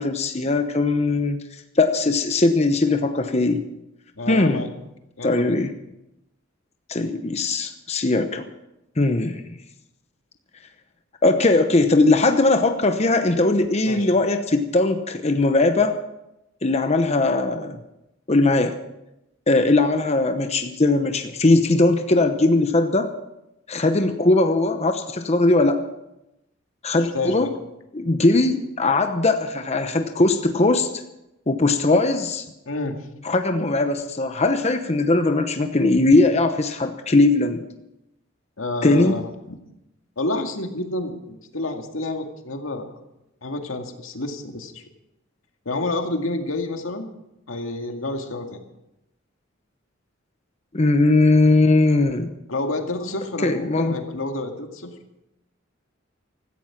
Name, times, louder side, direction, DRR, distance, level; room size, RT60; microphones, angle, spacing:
voice 1, 0.0-1.4 1.8-3.6 4.3-4.7 5.2-5.7 6.9-8.4 9.0-9.4 11.2-16.0 16.6-17.8 18.3-18.8 19.5-23.1 23.7-25.8 26.8-27.5 27.9-30.9 31.5-32.4 33.2-37.6 38.8-39.2 50.7-52.3 53.4-54.0, left 2 dB, 30° left, 7 dB, 0.9 m, -19 dB
voice 2, 4.2-4.7 5.2-5.5 13.9-14.1 27.0-27.5 32.7-33.1 38.6-39.6 40.2-42.9 43.4-44.8 45.7-47.1 47.5-48.6 52.5-54.9, left 2 dB, 90° left, 4 dB, 2.1 m, -29 dB
16.0 x 14.0 x 5.9 m, 0.89 s
head